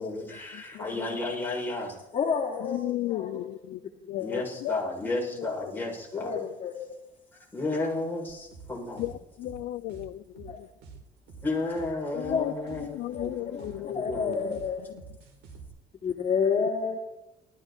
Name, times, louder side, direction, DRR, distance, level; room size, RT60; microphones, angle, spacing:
voice 1, 0.0-2.0 4.2-6.3 7.5-9.0 11.4-14.6, left 2 dB, 10° left, -3 dB, 7.1 m, -33 dB
voice 2, 0.5-1.2 2.6-3.8 4.1-4.8 5.1-5.8 6.4-6.5 9.0-10.7 12.1-14.6 14.9-15.0, left 15 dB, 80° left, 14 dB, 0.6 m, -36 dB
voice 3, 2.1-2.8 3.1-3.5 4.1-4.2 6.1-6.9 10.5-10.6 12.3-12.5 13.1-13.3 13.5-14.9 16.0-17.0, left 6 dB, 40° left, 0 dB, 3.1 m, -29 dB
sound 1, 8.3-15.7, right 5 dB, 85° right, 4.2 m, -48 dB
19.0 x 14.5 x 4.4 m, 0.89 s
cardioid pair, 110°, 17 cm